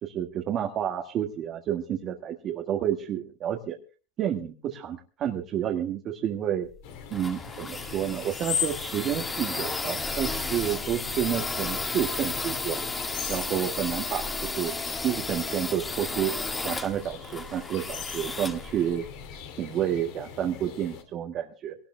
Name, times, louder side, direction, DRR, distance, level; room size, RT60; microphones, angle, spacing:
voice 1, 0.0-3.8 4.2-6.7 7.1-12.8 13.3-14.8 15.0-16.3 16.6-19.0 19.6-21.8, right 10 dB, 45° right, 1 dB, 1.7 m, -30 dB
sound 1, 6.7-19.5, left 3 dB, 20° left, 1.7 m, -34 dB
sound 2, 6.8-21.0, left 8 dB, 75° left, 2.8 m, -40 dB
24.0 x 19.0 x 2.2 m, 0.34 s
supercardioid pair, 105°, 0 cm